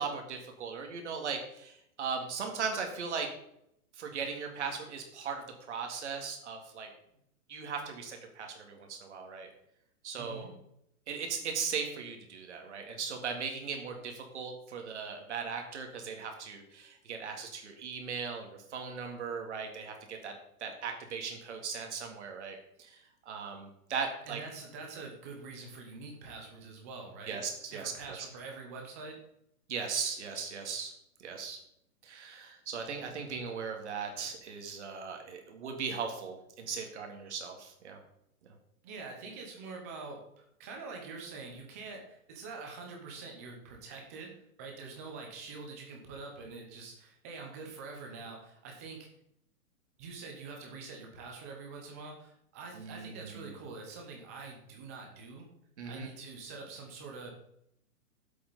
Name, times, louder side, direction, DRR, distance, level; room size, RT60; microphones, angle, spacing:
voice 1, 0.0-3.3 3.9-6.9 7.5-9.5 10.0-10.5 11.1-20.3 20.6-23.0 23.3-24.4 27.3-28.2 29.7-30.9 31.2-31.6 32.0-38.0 52.7-53.5 55.8-56.1, right 5 dB, 50° right, 3 dB, 2.2 m, -38 dB
voice 2, 10.2-10.5 24.2-27.4 27.7-29.2 38.8-44.3 44.6-49.1 50.0-55.5 55.9-57.4, right 4 dB, 10° right, 1 dB, 0.7 m, -45 dB
10.5 x 7.9 x 4.1 m, 0.77 s
hypercardioid pair, 175°, 44 cm